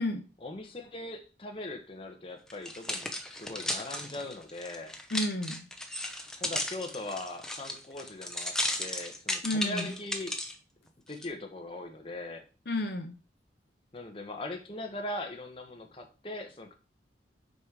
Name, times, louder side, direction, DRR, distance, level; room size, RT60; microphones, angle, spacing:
voice 1, 0.4-5.0 6.4-10.3 11.1-12.4 13.9-16.7, left 2 dB, 30° left, 3 dB, 1.2 m, -40 dB
sound 1, 2.5-10.5 11.1-11.3, left 1 dB, 5° left, 0.8 m, -35 dB
voice 2, 5.1-5.7 9.4-9.9 12.7-13.1, left 1 dB, 60° left, 6 dB, 0.7 m, -31 dB
6.3 x 5.2 x 4.8 m, 0.33 s
head